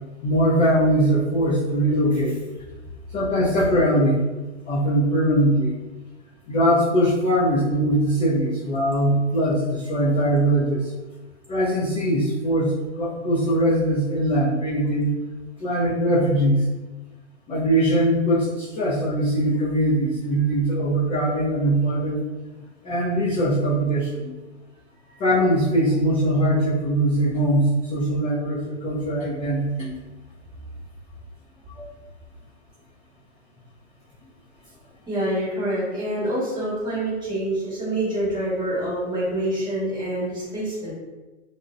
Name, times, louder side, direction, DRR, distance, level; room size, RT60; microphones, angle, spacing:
voice 1, 0.2-2.4 3.1-5.7 6.5-10.9 11.5-15.1 15.6-16.6 17.5-22.2 22.8-24.3 25.2-29.9 31.8-31.9, right 1 dB, 20° left, -10 dB, 0.4 m, -21 dB
voice 2, 35.1-40.9, right 1 dB, 10° right, -9 dB, 1.0 m, -26 dB
2.4 x 2.1 x 2.4 m, 1.2 s
hypercardioid pair, 130°, 35 cm